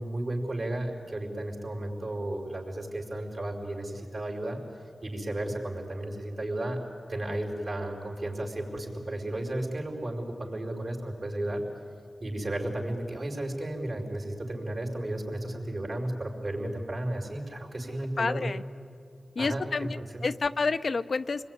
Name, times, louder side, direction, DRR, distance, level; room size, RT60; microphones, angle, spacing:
voice 1, 0.0-4.6 5.0-6.8 7.1-11.6 12.2-18.5 19.4-20.2, right 1 dB, 60° right, 1 dB, 5.2 m, -33 dB
voice 2, 18.2-18.6 19.4-21.5, left 4 dB, 65° left, 10 dB, 0.7 m, -29 dB
27.0 x 21.0 x 9.7 m, 2.4 s
cardioid pair, 50°, 0 cm